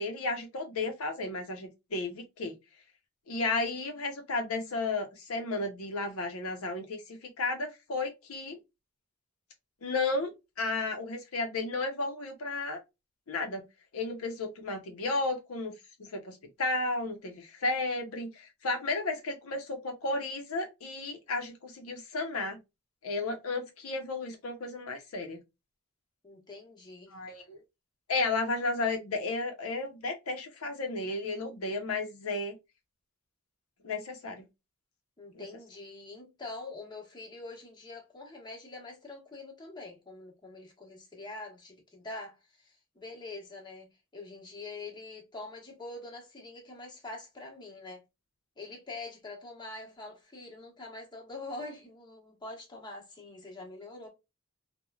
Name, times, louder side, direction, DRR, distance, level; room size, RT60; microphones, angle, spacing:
voice 1, 0.0-2.5 3.3-8.6 9.8-10.3 10.6-12.8 13.3-13.6 13.9-15.7 16.0-22.6 23.0-25.4 27.1-27.6 28.1-32.5 33.8-34.4 35.3-35.4, left 3 dB, 80° left, 0.6 m, -33 dB
voice 2, 26.2-27.2 35.2-48.0 48.6-54.1, left 2 dB, 20° left, 0.9 m, -44 dB
3.0 x 2.1 x 2.2 m
head